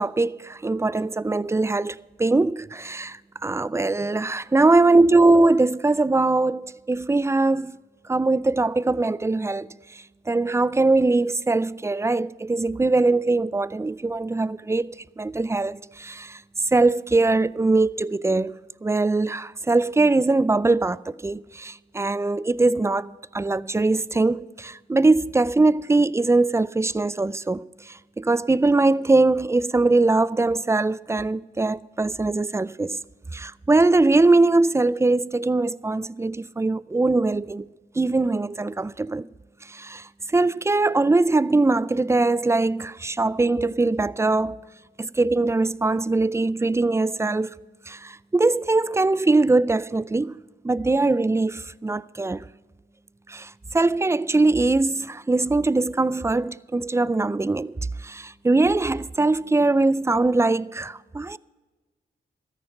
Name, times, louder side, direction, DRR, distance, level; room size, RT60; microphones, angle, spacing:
voice 1, 0.0-7.7 8.1-16.4 16.7-33.0 33.3-37.7 38.0-39.3 39.7-44.6 45.0-47.5 47.9-50.4 50.6-52.4 53.3-57.8 58.0-61.4, right 3 dB, 15° right, 0.4 m, -22 dB
13.5 x 10.0 x 5.8 m
cardioid pair, 55°, 20 cm